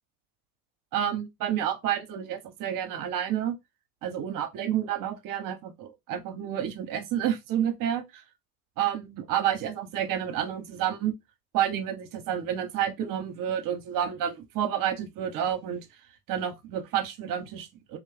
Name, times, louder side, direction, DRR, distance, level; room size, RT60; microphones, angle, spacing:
voice 1, 0.9-3.6 4.0-8.2 8.8-11.1 11.5-15.9 16.3-18.0, right 10 dB, 45° right, 0.7 m, -30 dB
2.6 x 2.0 x 3.1 m
hypercardioid pair, 75°, 47 cm